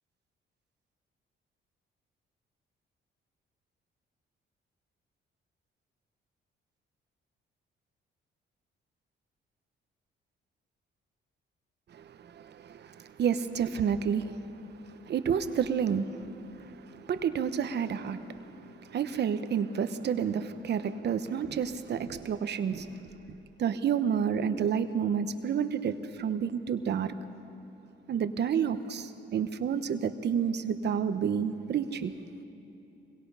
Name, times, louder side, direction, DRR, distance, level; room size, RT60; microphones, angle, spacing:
voice 1, 11.9-14.6 14.9-22.9 23.6-27.1 28.1-32.1, right 7 dB, 60° right, 10 dB, 1.1 m, -30 dB
25.0 x 22.5 x 5.7 m, 2.8 s
cardioid pair, 90°, 20 cm